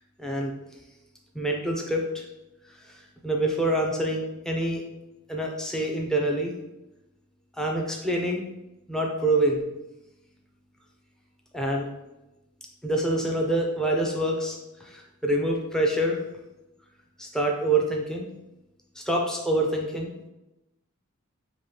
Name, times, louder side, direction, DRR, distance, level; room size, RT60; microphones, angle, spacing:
voice 1, 0.2-0.5 1.3-2.2 3.2-4.8 5.3-6.5 7.6-8.4 8.9-9.6 11.5-11.9 12.8-14.6 14.8-16.2 17.2-18.3 19.0-20.1, right 1 dB, 5° left, -1 dB, 0.5 m, -26 dB
5.3 x 2.9 x 2.8 m, 0.96 s
head